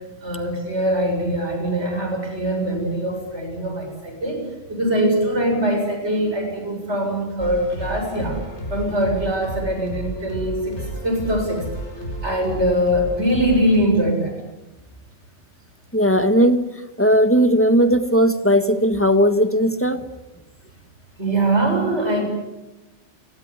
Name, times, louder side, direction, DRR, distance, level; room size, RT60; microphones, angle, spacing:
voice 1, 0.2-8.4 8.7-11.6 12.2-14.3 21.2-22.2, right 1 dB, 70° right, 3 dB, 7.7 m, -22 dB
sound 1, 7.4-13.8, right 1 dB, 70° left, 5.5 m, -32 dB
voice 2, 15.9-16.6 17.0-20.0, equal, 10° left, 9 dB, 1.6 m, -17 dB
30.0 x 18.0 x 9.8 m, 1.0 s
omnidirectional pair, 1.2 m